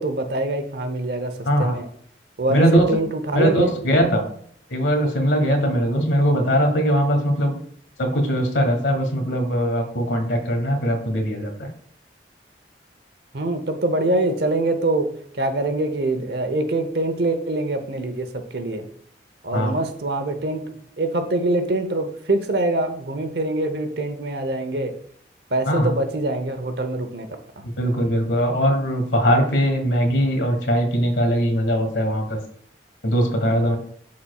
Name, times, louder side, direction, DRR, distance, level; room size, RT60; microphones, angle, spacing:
voice 1, 0.0-1.9 2.4-3.7 13.3-15.1 15.3-18.9 19.4-20.6 21.0-24.9 25.5-27.3 27.6-27.7, right 2 dB, 60° right, 8 dB, 0.8 m, -24 dB
voice 2, 1.4-1.8 2.5-2.8 3.3-4.2 4.7-7.6 8.0-11.7 19.5-19.7 25.7-25.9 27.6-32.4 33.0-33.8, equal, 80° left, 6 dB, 1.4 m, -20 dB
11.5 x 4.2 x 2.3 m, 0.63 s
head